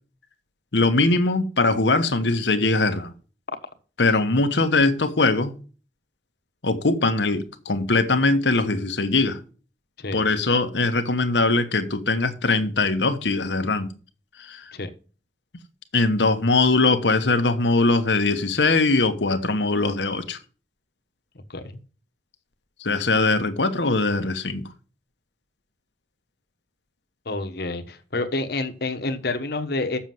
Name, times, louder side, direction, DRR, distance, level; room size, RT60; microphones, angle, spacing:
voice 1, 0.7-3.1 4.0-5.5 6.6-9.4 10.1-13.9 14.4-14.7 15.9-20.4 22.8-24.6, left 3 dB, 85° left, 1.2 m, -21 dB
voice 2, 27.2-30.0, left 2 dB, 65° left, 1.3 m, -28 dB
7.2 x 6.7 x 7.7 m
head